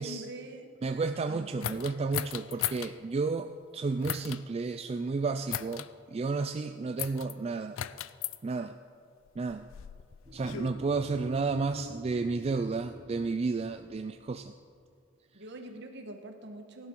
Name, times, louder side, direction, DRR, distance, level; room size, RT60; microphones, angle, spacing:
voice 1, 0.0-0.7 1.2-1.5 15.3-16.9, right 1 dB, 60° right, 4 dB, 1.4 m, -44 dB
voice 2, 0.8-7.8 8.4-8.8 9.4-9.7 10.3-14.5, right 4 dB, 30° right, 8 dB, 0.3 m, -32 dB
sound 1, 1.6-2.9 4.0-4.4 5.5-5.9 7.0-7.3 7.8-8.4 9.3-10.7, left 11 dB, 75° left, 0.4 m, -36 dB
sound 2, 10.2-14.4, right 1 dB, 15° right, 4.0 m, -47 dB
16.5 x 11.0 x 4.5 m, 2.2 s
head